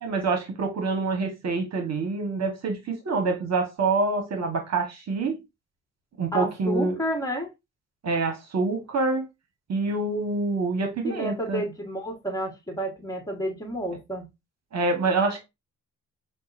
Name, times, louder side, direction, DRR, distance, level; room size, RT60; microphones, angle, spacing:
voice 1, 0.0-5.4 6.2-7.0 8.0-9.3 9.7-11.6 14.7-15.4, right 3 dB, 50° right, 1.2 m, -26 dB
voice 2, 6.3-7.5 11.0-14.3, equal, 10° left, 1.5 m, -30 dB
5.4 x 2.3 x 2.5 m
supercardioid pair, 60°, 35 cm